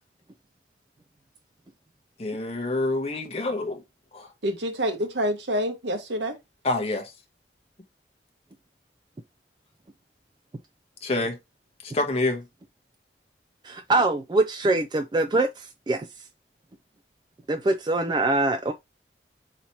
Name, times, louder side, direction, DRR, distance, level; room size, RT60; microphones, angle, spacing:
voice 1, 2.2-3.8 4.1-4.3 6.6-7.1 11.0-11.4 11.8-12.4, left 2 dB, 35° left, 0.8 m, -27 dB
voice 2, 4.4-6.3, equal, 85° right, 1.1 m, -27 dB
voice 3, 13.6-16.1 17.5-18.7, right 2 dB, 25° right, 0.3 m, -24 dB
4.1 x 2.8 x 4.4 m
head